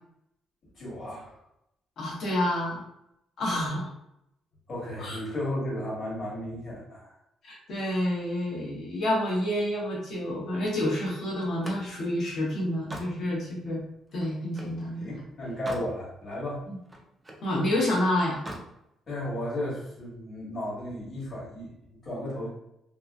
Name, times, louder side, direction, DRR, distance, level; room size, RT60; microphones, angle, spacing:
voice 1, 0.7-1.4 4.7-7.1 15.0-16.6 19.1-22.5, left 1 dB, 35° left, -7 dB, 1.3 m, -34 dB
voice 2, 2.0-2.8 3.4-3.9 5.0-5.2 7.4-13.8 14.1-15.1 16.7-16.8 17.4-18.4, left 1 dB, 55° left, -4 dB, 1.0 m, -28 dB
Slam, 11.4-14.8 15.3-16.0 16.3-17.5 18.3-18.7, right 1 dB, 10° right, 0.4 m, -43 dB
2.9 x 2.5 x 2.3 m, 0.79 s
cardioid pair, 155°, 0 cm